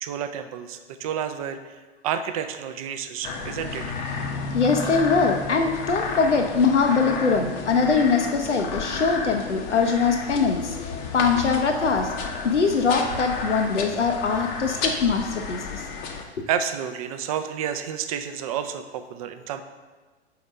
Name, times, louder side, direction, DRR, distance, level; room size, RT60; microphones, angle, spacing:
voice 1, 0.0-1.8 2.0-4.0 16.5-19.6, right 8 dB, 35° right, 9 dB, 0.5 m, -30 dB
sound 1, 3.2-16.2, left 4 dB, 25° left, 0.7 m, -32 dB
voice 2, 4.5-12.1 12.4-15.8 16.4-16.5, left 5 dB, 85° left, 4 dB, 0.7 m, -22 dB
5.8 x 4.2 x 6.3 m, 1.3 s
figure-of-eight pair, 105°, 34 cm